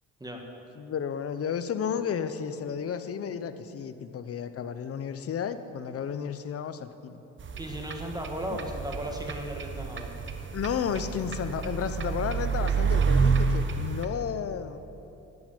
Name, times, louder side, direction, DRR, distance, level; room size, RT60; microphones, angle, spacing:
voice 1, 0.8-7.2 8.5-8.6 10.5-14.8, left 7 dB, 50° left, 11 dB, 0.8 m, -32 dB
sound 1, 7.4-14.1, right 5 dB, 40° right, 1.1 m, -29 dB
voice 2, 7.6-10.1, right 1 dB, 15° right, 1 dB, 1.7 m, -36 dB
12.0 x 8.2 x 9.0 m, 2.9 s
cardioid pair, 90°, 30 cm